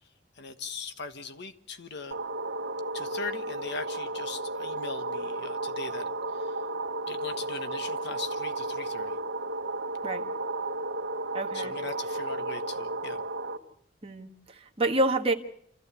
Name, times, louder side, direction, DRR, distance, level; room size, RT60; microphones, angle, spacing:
voice 1, 0.4-2.2 2.9-6.5 7.1-9.2 11.5-13.2, left 4 dB, 60° left, 9 dB, 1.3 m, -40 dB
sound 1, 2.1-13.6, right 2 dB, 70° right, 1.6 m, -33 dB
voice 2, 11.3-11.7 14.0-15.3, right 2 dB, 30° right, 1 dB, 1.6 m, -28 dB
27.0 x 14.5 x 8.2 m, 0.70 s
head